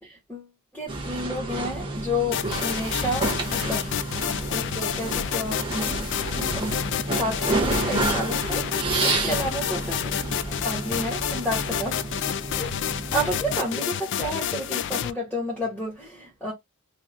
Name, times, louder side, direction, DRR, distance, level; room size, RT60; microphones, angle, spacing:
voice 1, 0.0-10.3 10.6-12.8 13.1-16.5, equal, 5° left, 1.9 m, -31 dB
sound 1, 0.9-13.6, right 2 dB, 25° right, 1.0 m, -30 dB
sound 2, 2.3-15.1, left 10 dB, 55° left, 0.3 m, -29 dB
4.0 x 3.0 x 2.6 m
head